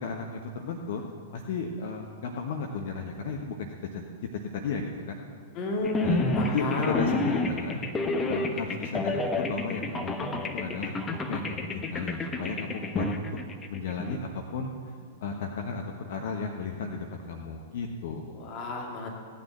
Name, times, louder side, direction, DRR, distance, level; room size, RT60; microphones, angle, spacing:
voice 1, 0.0-4.1 4.5-5.2 6.0-6.2 6.5-7.8 8.3-10.9 11.3-13.3 13.7-14.7 15.2-18.3, left 5 dB, 50° left, 3 dB, 1.2 m, -34 dB
voice 2, 5.5-7.1 18.4-19.1, left 2 dB, 35° left, -1 dB, 2.4 m, -31 dB
sound 1, 5.8-14.2, left 2 dB, 15° left, 1.2 m, -30 dB
17.0 x 9.4 x 7.3 m, 2.1 s
figure-of-eight pair, 100°, 0 cm